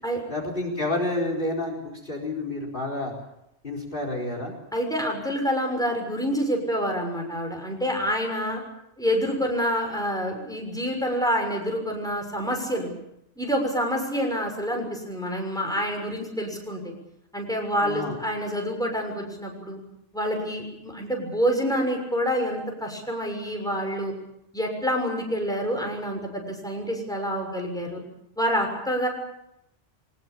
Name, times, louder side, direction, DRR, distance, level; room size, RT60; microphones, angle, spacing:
voice 1, 0.3-3.1 3.6-4.5 17.8-18.1, left 2 dB, 50° left, 2 dB, 4.6 m, -29 dB
voice 2, 4.7-8.6 9.0-12.9 13.4-16.9 17.3-19.8 20.1-24.1 24.5-28.0 28.4-29.1, equal, 5° left, 1 dB, 6.5 m, -27 dB
23.5 x 21.0 x 8.7 m, 0.83 s
omnidirectional pair, 1.2 m